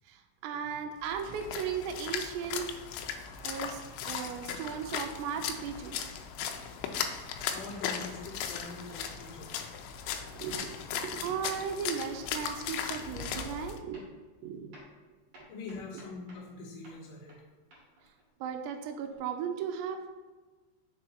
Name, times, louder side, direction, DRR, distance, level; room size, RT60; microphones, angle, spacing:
voice 1, 0.1-2.7 3.4-5.9 10.3-10.7 11.0-14.0 14.4-14.7 18.4-20.0, right 7 dB, 85° right, 5 dB, 2.5 m, -36 dB
Splash splatter, 1.0-13.8, left 8 dB, 85° left, 2.5 m, -37 dB
sound 1, 3.4-4.6 4.9-7.3 12.8-12.9 13.2-13.6 13.9-14.3 14.7-16.6 16.8-19.2, right 1 dB, 50° right, 3.1 m, -58 dB
voice 2, 7.5-9.5 15.5-17.4, left 3 dB, 70° left, -7 dB, 2.1 m, -44 dB
6.8 x 3.8 x 4.3 m, 1.3 s
omnidirectional pair, 5.6 m